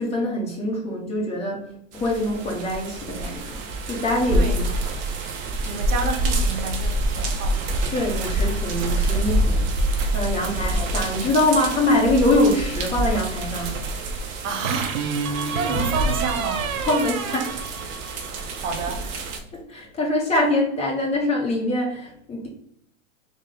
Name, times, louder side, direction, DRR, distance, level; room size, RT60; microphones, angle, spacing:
voice 1, 0.0-4.7 7.9-9.8 10.1-13.7 15.5-15.6 16.8-17.7 19.5-22.5, left 1 dB, 15° left, 1.1 m, -24 dB
sound 1, 1.9-19.4, right 1 dB, 20° right, 0.4 m, -26 dB
voice 2, 4.3-4.7 5.6-7.7 10.4-10.8 14.4-15.0 15.5-16.7 18.5-19.1, right 5 dB, 60° right, 1.2 m, -30 dB
sound 2, 11.9-12.8 14.6-18.4, right 6 dB, 90° right, 0.7 m, -29 dB
3.2 x 3.2 x 3.8 m
hypercardioid pair, 125°, 41 cm